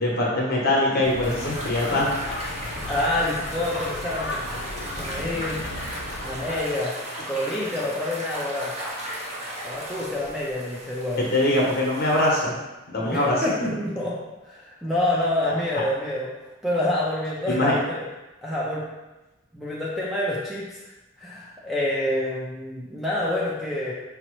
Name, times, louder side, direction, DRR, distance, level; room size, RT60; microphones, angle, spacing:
voice 1, 0.0-2.1 11.3-12.6 12.9-13.4 17.5-17.8, left 1 dB, 50° left, -4 dB, 0.9 m, -22 dB
sound 1, 1.0-6.6, left 2 dB, 65° left, 0.4 m, -35 dB
sound 2, 1.2-12.4, right 1 dB, 30° right, 0.7 m, -36 dB
voice 2, 2.8-4.4 5.0-5.6 6.2-6.9 7.3-8.7 9.6-11.2 13.0-14.1 14.4-16.3 16.6-18.1 18.4-18.9 19.5-20.8 21.2-23.9, left 1 dB, ahead, -7 dB, 0.4 m, -27 dB
5.2 x 2.0 x 3.0 m, 1.1 s
head